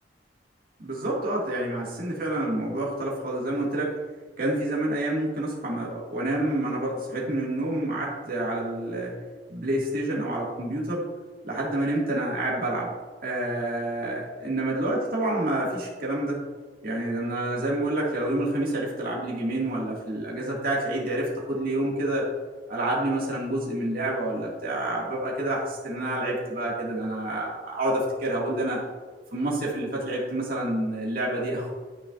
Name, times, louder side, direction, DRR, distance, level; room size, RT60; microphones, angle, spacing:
voice 1, 0.8-4.0 4.4-9.1 9.5-11.0 11.4-12.9 13.2-16.4 16.8-22.3 22.7-28.8 29.3-31.7, right 1 dB, 55° right, -4 dB, 2.1 m, -28 dB
12.5 x 4.8 x 2.6 m, 1.4 s
head